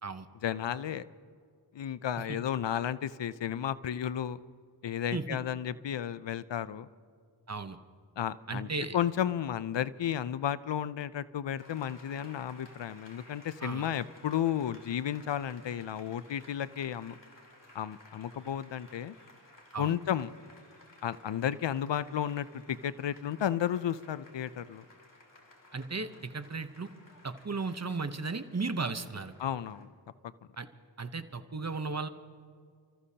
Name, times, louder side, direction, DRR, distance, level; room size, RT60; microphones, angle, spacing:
voice 1, 0.4-1.1 1.7-4.4 4.8-6.9 8.2-8.7 8.9-17.1 17.7-19.2 19.8-20.3 21.0-24.8 29.4-29.9, left 10 dB, 75° left, 16 dB, 0.6 m, -33 dB
voice 2, 7.5-7.8 8.5-9.0 13.6-13.9 19.7-19.9 25.7-26.9 27.2-29.3 30.6-30.7 31.0-32.1, right 4 dB, 35° right, 10 dB, 0.9 m, -35 dB
Applause, 11.6-29.9, left 1 dB, 45° left, 3.1 m, -57 dB
30.0 x 14.5 x 2.8 m, 2.1 s
wide cardioid pair, 50°, 44 cm